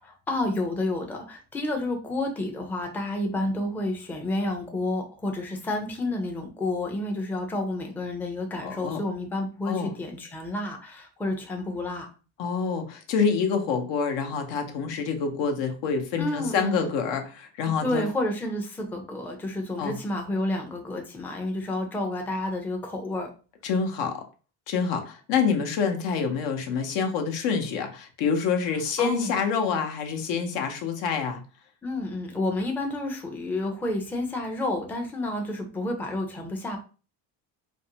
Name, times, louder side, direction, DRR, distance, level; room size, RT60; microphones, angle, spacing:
voice 1, 0.0-12.1 16.2-16.9 17.8-23.3 29.0-29.4 29.7-29.8 31.8-36.8, left 1 dB, 5° left, 2 dB, 0.4 m, -30 dB
voice 2, 8.6-9.0 9.7-9.9 12.4-18.0 19.8-20.0 23.6-24.2 24.7-31.4, left 6 dB, 70° left, 4 dB, 0.7 m, -27 dB
2.6 x 2.1 x 2.7 m, 0.35 s
cardioid pair, 95°, 44 cm